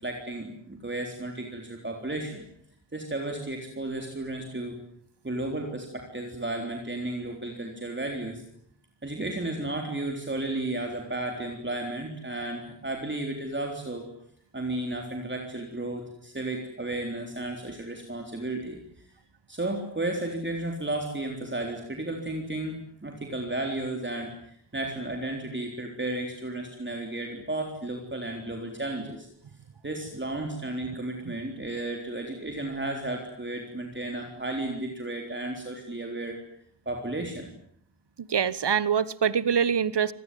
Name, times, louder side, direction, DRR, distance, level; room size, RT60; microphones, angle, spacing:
voice 1, 0.0-2.5 2.9-4.8 5.2-8.4 9.0-14.1 14.5-18.8 19.5-29.3 29.8-36.4 36.9-37.5, right 2 dB, 25° right, 2 dB, 3.8 m, -33 dB
voice 2, 38.2-40.1, right 7 dB, 70° right, 18 dB, 1.3 m, -25 dB
27.0 x 20.0 x 9.4 m, 0.67 s
wide cardioid pair, 115°, 43 cm